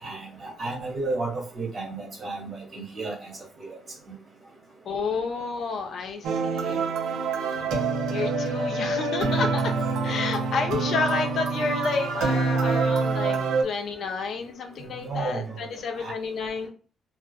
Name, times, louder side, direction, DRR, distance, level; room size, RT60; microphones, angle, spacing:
voice 1, 0.0-3.3 3.6-3.7 15.0-15.6 16.0-16.1, right 3 dB, 40° right, -1 dB, 1.4 m, -32 dB
voice 2, 4.9-6.9 8.1-9.7 10.0-16.7, left 4 dB, 65° left, 4 dB, 0.5 m, -30 dB
sound 1, 6.2-13.6, right 4 dB, 85° right, 0.4 m, -26 dB
2.5 x 2.3 x 2.2 m, 0.38 s
cardioid pair, 90°, 0 cm